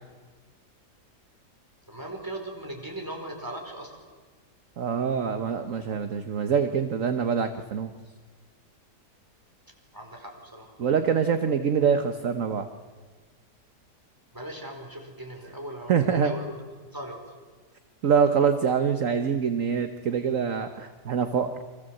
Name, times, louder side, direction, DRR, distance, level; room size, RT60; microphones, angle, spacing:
voice 1, 1.9-3.9 9.9-10.7 14.3-16.5 16.9-17.2, right 1 dB, 10° right, 2 dB, 5.0 m, -38 dB
voice 2, 4.8-7.9 10.8-12.7 15.9-16.3 18.0-21.5, right 7 dB, 55° right, 8 dB, 1.5 m, -25 dB
29.5 x 25.0 x 7.9 m, 1.4 s
omnidirectional pair, 1.8 m